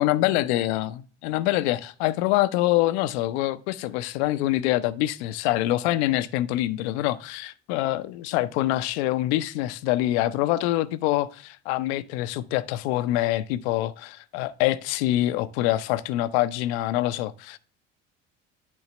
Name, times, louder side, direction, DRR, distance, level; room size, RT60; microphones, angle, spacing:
voice 1, 0.0-17.6, left 15 dB, 60° left, 0.6 m, -25 dB
10.5 x 4.7 x 3.1 m
figure-of-eight pair, 60°, 37 cm